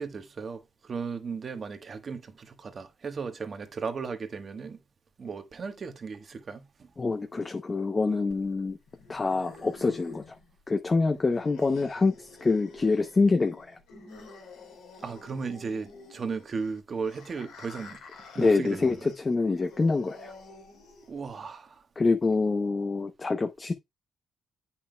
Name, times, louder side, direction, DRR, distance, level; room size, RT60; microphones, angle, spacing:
voice 1, 0.0-4.8 5.2-6.9 15.0-18.0 18.3-19.1 21.1-21.8, right 5 dB, 45° right, 1.2 m, -36 dB
voice 2, 7.0-8.8 9.1-10.4 10.7-13.7 18.4-20.3 22.0-23.7, left 3 dB, 25° left, 0.7 m, -26 dB
sound 1, 8.3-21.3, left 3 dB, 90° left, 2.4 m, -49 dB
8.7 x 5.7 x 2.2 m
cardioid pair, 90°, 0 cm